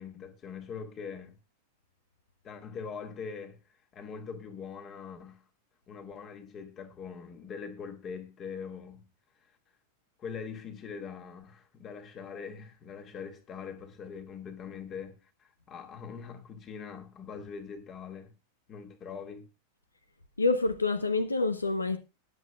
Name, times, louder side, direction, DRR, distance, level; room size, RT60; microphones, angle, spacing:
voice 1, 0.0-1.3 2.4-3.6 3.9-5.4 5.9-9.1 9.4-9.5 10.2-18.3 18.7-19.5, left 6 dB, 30° left, 2.1 m, -42 dB
voice 2, 20.4-22.0, left 3 dB, 80° left, 0.9 m, -27 dB
21.0 x 7.9 x 2.4 m
figure-of-eight pair, 90°, 0 cm